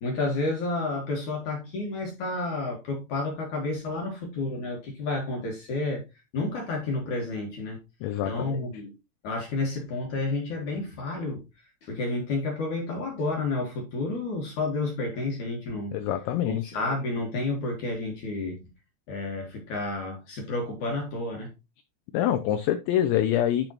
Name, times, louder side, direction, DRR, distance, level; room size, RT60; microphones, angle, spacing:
voice 1, 0.0-6.0 6.3-7.8 8.2-8.9 9.2-11.4 11.8-16.0 16.4-18.7 19.1-21.5, left 2 dB, 60° left, 2.0 m, -30 dB
voice 2, 8.0-8.7 15.9-16.7 22.1-23.7, left 11 dB, 85° left, 2.6 m, -26 dB
12.0 x 5.2 x 2.9 m
omnidirectional pair, 5.9 m